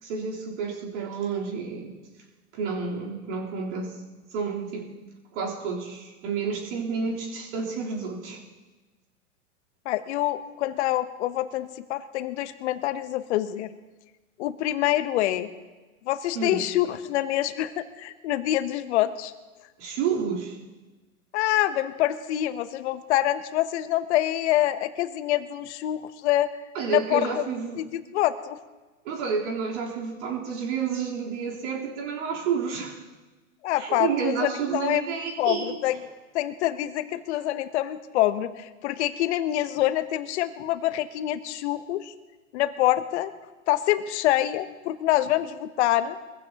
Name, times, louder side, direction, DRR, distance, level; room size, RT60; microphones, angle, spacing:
voice 1, 0.0-2.0 2.5-4.0 4.3-4.9 5.3-8.4 16.3-16.6 19.8-20.6 26.7-27.8 29.0-33.0 33.7-35.8, right 6 dB, 55° right, -2 dB, 3.8 m, -30 dB
voice 2, 9.8-13.7 14.4-15.5 16.0-19.3 21.3-26.5 26.9-27.2 27.8-28.6 33.6-35.0 35.4-36.0 36.3-42.1 42.5-43.3 43.7-46.2, left 14 dB, 50° left, 12 dB, 1.0 m, -26 dB
23.5 x 15.5 x 2.9 m, 1.2 s
hypercardioid pair, 125°, 42 cm